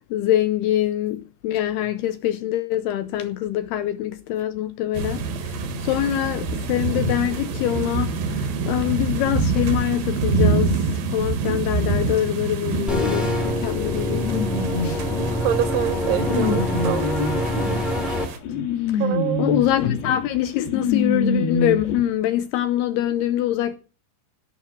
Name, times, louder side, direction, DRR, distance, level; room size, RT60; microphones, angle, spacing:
voice 1, 0.0-10.8 11.1-14.4 14.8-15.0 18.9-19.0 19.4-23.8, left 12 dB, 80° left, 2.5 m, -24 dB
sound 1, 4.9-18.4, right 4 dB, 60° right, 2.9 m, -26 dB
sound 2, 12.9-22.0, left 3 dB, 60° left, 3.3 m, -26 dB
sound 3, 12.9-18.2, left 1 dB, ahead, 1.4 m, -25 dB
voice 2, 15.4-17.1 17.6-17.7 18.1-18.2 19.0-19.5, right 12 dB, 75° right, 2.6 m, -26 dB
17.0 x 6.3 x 7.6 m
omnidirectional pair, 5.2 m